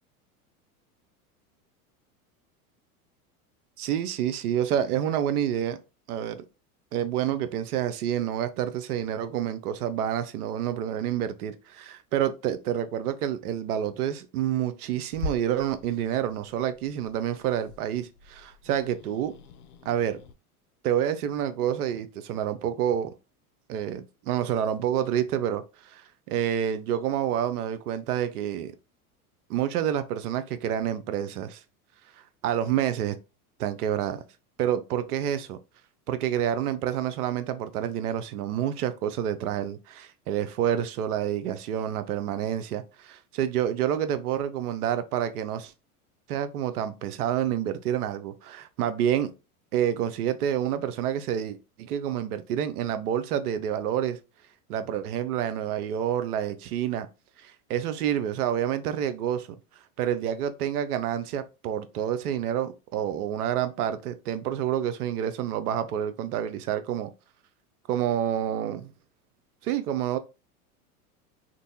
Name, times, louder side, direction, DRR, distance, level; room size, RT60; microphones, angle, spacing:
voice 1, 3.8-5.8 6.1-6.4 6.9-19.3 19.9-20.2 20.8-23.1 23.7-28.7 29.5-31.6 32.4-33.2 33.6-34.2 34.6-35.6 36.1-45.7 46.3-49.3 49.7-54.2 54.7-57.1 57.4-59.5 60.0-67.1 67.9-68.9 69.6-70.2, right 10 dB, 80° right, 0.6 m, -28 dB
Growling / Hiss, 15.1-20.3, left 2 dB, 80° left, 0.5 m, -42 dB
2.6 x 2.1 x 2.6 m
hypercardioid pair, 95°, 45 cm